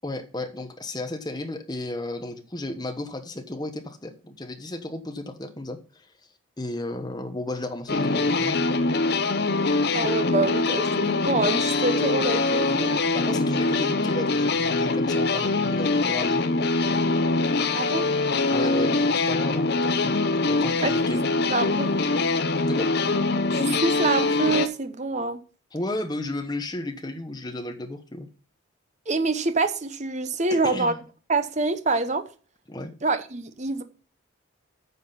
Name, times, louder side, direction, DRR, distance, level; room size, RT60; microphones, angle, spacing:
voice 1, 0.0-6.1 6.6-8.6 13.1-16.5 18.5-20.2 20.5-21.2 22.7-22.9 25.7-28.3 30.6-31.0 32.7-32.9, left 1 dB, 20° left, 1.0 m, -33 dB
sound 1, 7.9-24.7, left 3 dB, 50° left, 0.7 m, -23 dB
voice 2, 9.9-13.0 17.7-18.1 20.8-21.0 21.5-22.0 23.5-25.4 29.1-30.9 31.3-32.3 33.0-33.8, right 3 dB, 35° right, 0.8 m, -26 dB
9.5 x 6.0 x 5.5 m
head